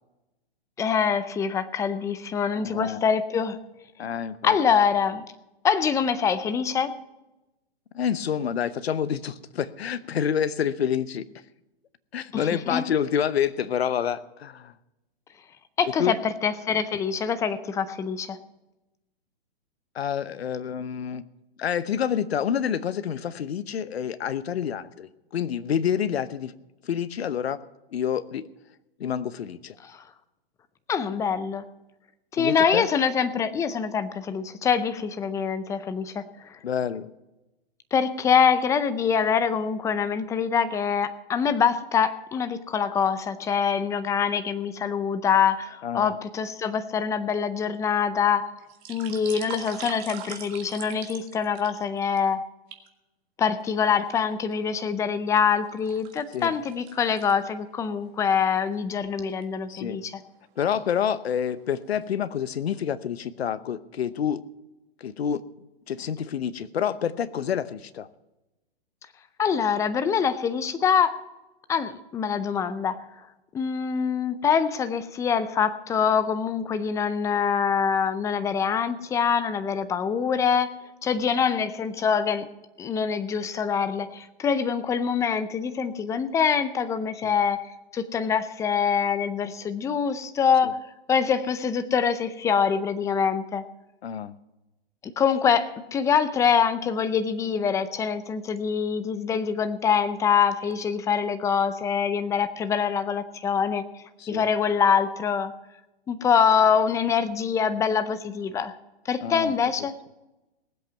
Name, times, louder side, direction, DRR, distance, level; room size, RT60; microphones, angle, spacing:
voice 1, 0.8-3.6 4.4-5.2 5.6-6.9 12.3-12.4 12.7-12.8 15.8-16.2 16.4-18.4 30.9-31.6 32.3-36.6 37.9-48.5 48.9-52.4 53.4-60.1 69.4-71.2 71.7-73.0 73.5-80.7 81.0-82.5 82.8-87.6 87.9-90.8 91.1-93.6 95.2-103.8 104.3-105.5 106.1-108.7 109.1-109.9, left 7 dB, 10° left, 12 dB, 0.5 m, -24 dB
voice 2, 2.6-3.0 4.0-4.6 7.9-11.2 12.1-14.7 16.0-16.2 19.9-21.2 21.6-26.5 26.8-27.6 27.9-28.5 29.0-29.8 32.4-32.9 36.6-37.1 45.8-46.2 56.3-56.6 59.7-60.0 60.6-64.4 65.0-65.4 65.9-68.1 87.2-87.3 90.6-90.7 94.0-94.3 104.2-104.5 109.2-109.5, left 8 dB, 80° left, 15 dB, 0.9 m, -28 dB
sound 1, 48.6-52.2 52.7-52.9 53.6-54.4 54.9-57.7 58.1-58.2 58.6-58.8 59.2-59.4 60.3-60.8 61.3-61.5 61.8-62.4 62.8-62.9, right 9 dB, 30° right, 1.7 m, -42 dB
18.5 x 8.1 x 5.8 m, 0.99 s
hypercardioid pair, 135°, 31 cm